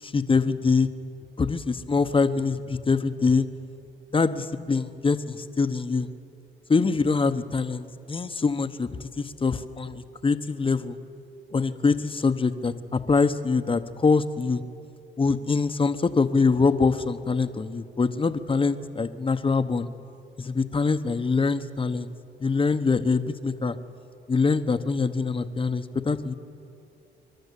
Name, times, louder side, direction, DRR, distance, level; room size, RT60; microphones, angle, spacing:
voice 1, 0.0-0.9 1.4-3.4 4.1-6.1 6.7-8.9 9.2-11.0 11.5-14.6 15.2-19.9 20.4-22.1 22.4-23.8 24.3-26.3, left 4 dB, 25° left, 10 dB, 1.0 m, -24 dB
29.5 x 12.0 x 8.3 m, 2.6 s
cardioid pair, 90°, 20 cm